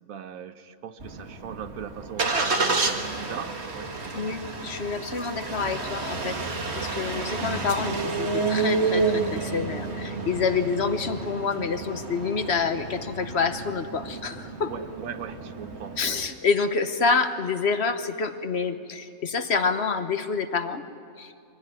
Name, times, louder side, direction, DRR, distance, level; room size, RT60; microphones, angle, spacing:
voice 1, 0.0-4.4 14.7-16.2, right 8 dB, 80° right, 10 dB, 1.3 m, -40 dB
Engine starting, 1.0-16.3, right 3 dB, 50° right, 1.9 m, -30 dB
voice 2, 4.1-14.7 16.0-20.8 21.2-21.3, left 5 dB, 55° left, 9 dB, 1.2 m, -27 dB
23.0 x 16.5 x 9.5 m, 2.4 s
omnidirectional pair, 1.4 m